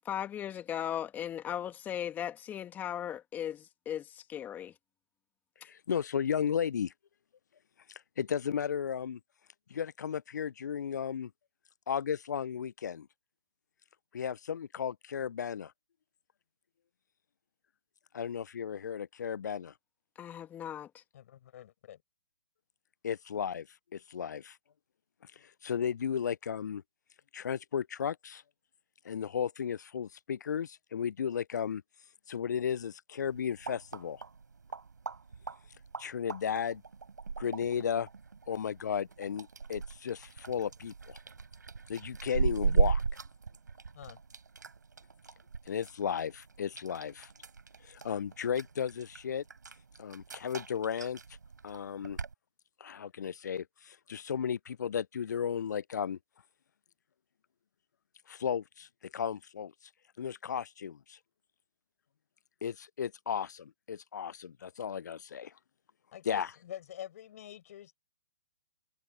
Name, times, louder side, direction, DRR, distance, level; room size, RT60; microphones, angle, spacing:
voice 1, 0.0-4.7 20.2-21.0, left 10 dB, 20° left, 2.2 m, -37 dB
voice 2, 5.6-6.9 8.2-9.2 9.7-11.3 11.9-13.1 14.1-15.7 18.1-19.7 23.0-23.7 23.9-24.6 25.6-26.8 27.3-28.4 29.0-31.8 32.3-34.2 36.0-36.8 37.4-38.1 38.5-41.2 41.9-43.0 45.7-47.3 47.8-49.4 50.0-51.2 51.6-52.2 52.8-56.2 58.3-58.9 59.1-59.7 60.2-61.2 62.6-65.5 66.3-66.5, left 7 dB, 75° left, 0.4 m, -34 dB
voice 3, 21.1-22.0 43.9-44.2 66.1-68.0, left 11 dB, 55° left, 7.9 m, -46 dB
sound 1, 33.2-52.3, right 5 dB, 85° right, 5.3 m, -37 dB
hypercardioid pair, 130°, 10 cm